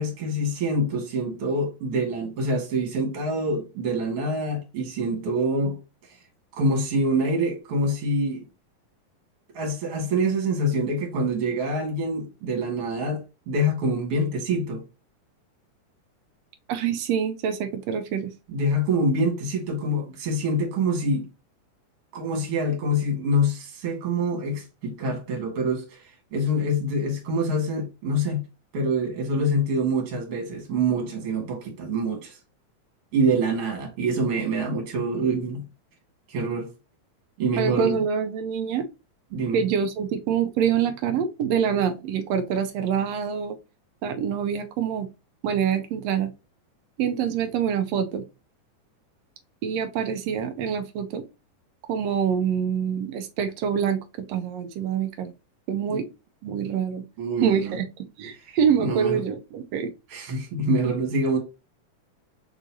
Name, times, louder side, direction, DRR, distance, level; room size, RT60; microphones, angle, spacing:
voice 1, 0.0-5.8 6.5-8.5 9.5-14.8 18.5-21.3 22.1-26.0 26.3-28.5 28.7-32.4 33.1-35.6 36.3-36.7 37.4-38.0 39.3-39.6 55.9-56.0 57.2-57.8 58.8-59.2 60.1-61.4, right 1 dB, 55° right, 2.3 m, -25 dB
voice 2, 16.7-18.3 37.6-38.8 39.5-43.6 44.0-45.1 45.4-46.3 47.0-48.2 49.6-51.2 51.9-54.0 54.3-55.3 55.7-56.1 56.4-57.0 57.4-57.9 58.2-59.9, right 7 dB, 80° right, 1.5 m, -25 dB
4.8 x 4.0 x 2.7 m
omnidirectional pair, 3.7 m